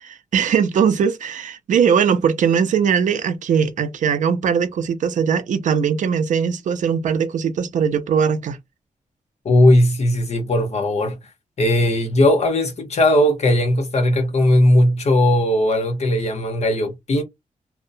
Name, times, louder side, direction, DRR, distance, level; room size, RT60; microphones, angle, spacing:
voice 1, 0.0-8.6, right 7 dB, 65° right, 0.4 m, -20 dB
voice 2, 9.4-11.2 11.6-17.2, left 1 dB, 55° left, 1.0 m, -17 dB
2.7 x 2.1 x 2.6 m
wide cardioid pair, 140°, 14 cm